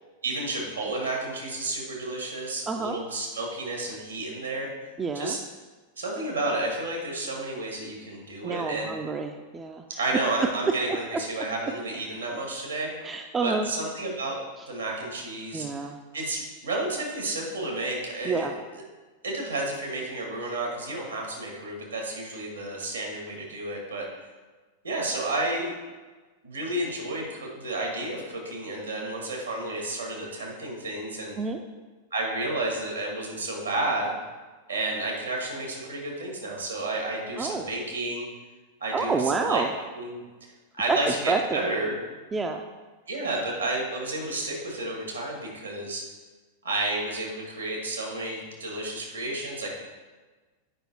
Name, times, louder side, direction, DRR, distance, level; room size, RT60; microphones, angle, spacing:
voice 1, 0.2-4.7 5.1-5.4 6.0-8.9 10.0-12.9 13.4-14.4 14.7-15.7 16.1-18.5 19.2-24.0 24.8-25.8 26.4-31.3 32.1-34.1 34.7-38.3 38.8-39.6 40.0-40.2 40.8-42.0 43.1-46.0 46.6-49.7, right 2 dB, 75° right, -1 dB, 1.8 m, -31 dB
voice 2, 2.7-3.0 5.0-5.4 8.4-9.8 13.0-13.7 15.5-16.0 18.3-18.5 31.4-31.6 37.4-37.7 38.9-39.7 40.9-41.6 42.3-42.6, right 4 dB, 20° right, 5 dB, 0.4 m, -28 dB
8.8 x 5.2 x 2.9 m, 1.3 s
figure-of-eight pair, 90°, 0 cm